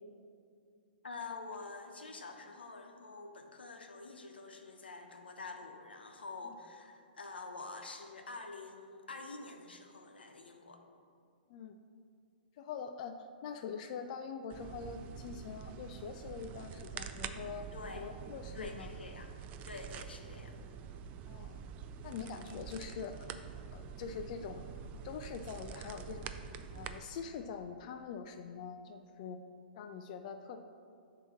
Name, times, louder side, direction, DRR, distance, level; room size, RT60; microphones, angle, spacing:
voice 1, 1.0-10.8 17.7-18.1 18.5-19.3 19.7-20.6, left 3 dB, 90° left, 4 dB, 0.9 m, -47 dB
voice 2, 12.6-17.7 18.0-18.9 21.3-21.6 22.0-23.3 23.7-24.7 25.0-26.3 26.7-29.4 29.7-30.6, left 6 dB, 45° left, 6 dB, 0.3 m, -44 dB
sound 1, 14.5-27.0, right 7 dB, 30° right, 0.3 m, -46 dB
7.9 x 2.9 x 5.9 m, 2.3 s
hypercardioid pair, 130°, 5 cm